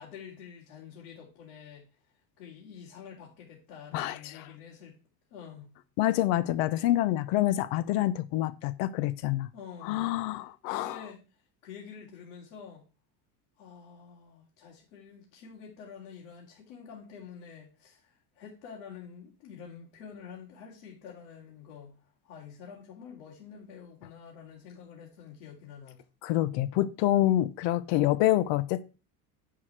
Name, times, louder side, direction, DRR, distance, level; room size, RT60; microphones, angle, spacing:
voice 1, 0.0-1.9 2.4-5.0 5.3-5.7 9.5-10.0 10.6-11.2 11.6-12.8 13.6-26.0, left 7 dB, 80° left, 3.0 m, -48 dB
voice 2, 6.0-9.5 9.8-11.0 26.2-28.8, left 14 dB, 60° left, 0.8 m, -27 dB
10.0 x 4.8 x 4.6 m
cardioid pair, 175°, 45 cm